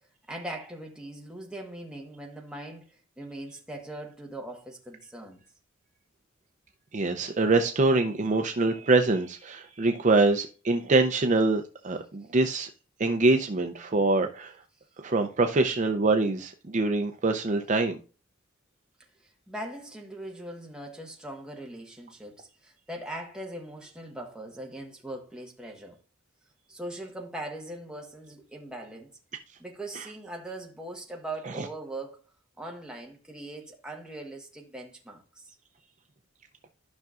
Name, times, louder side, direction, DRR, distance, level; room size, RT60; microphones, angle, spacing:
voice 1, 0.3-5.4 19.2-26.0 26.7-29.2 29.6-32.2 32.6-35.6, right 1 dB, 5° right, 1.3 m, -40 dB
voice 2, 6.9-12.7 13.0-14.6 15.0-18.0 30.0-30.1, right 3 dB, 35° right, 0.5 m, -24 dB
12.0 x 5.8 x 2.5 m
head